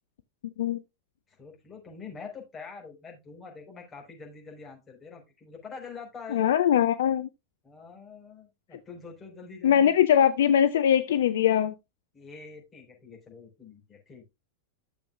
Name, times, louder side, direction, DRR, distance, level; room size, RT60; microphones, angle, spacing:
voice 1, 1.3-6.5 7.6-10.0 12.1-14.2, left 5 dB, 20° left, 4.1 m, -45 dB
voice 2, 6.3-7.3 9.6-11.7, left 9 dB, 60° left, 0.4 m, -21 dB
13.0 x 7.0 x 2.3 m
figure-of-eight pair, 90°, 0 cm